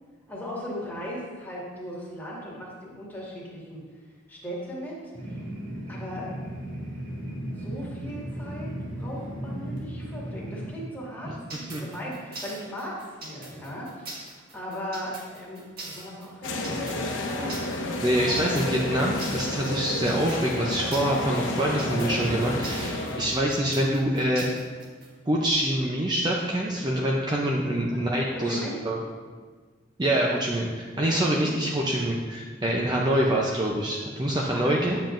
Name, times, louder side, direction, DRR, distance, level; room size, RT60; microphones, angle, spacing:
voice 1, 0.3-3.8 4.3-5.4 5.9-6.3 7.6-17.6 27.9-28.0 28.3-28.8 31.0-31.6 34.5-35.0, equal, 10° left, -6 dB, 2.0 m, -38 dB
sound 1, 5.1-10.7, right 1 dB, 80° right, 2.1 m, -36 dB
voice 2, 11.2-11.8 18.0-24.5 25.3-28.6 28.8-29.0 30.0-35.0, right 1 dB, 25° right, -2 dB, 0.6 m, -25 dB
sound 2, 11.5-25.1, right 2 dB, 55° right, 1.6 m, -41 dB
sound 3, 16.4-23.3, left 2 dB, 75° left, 0.8 m, -31 dB
9.3 x 7.3 x 2.6 m, 1.5 s
head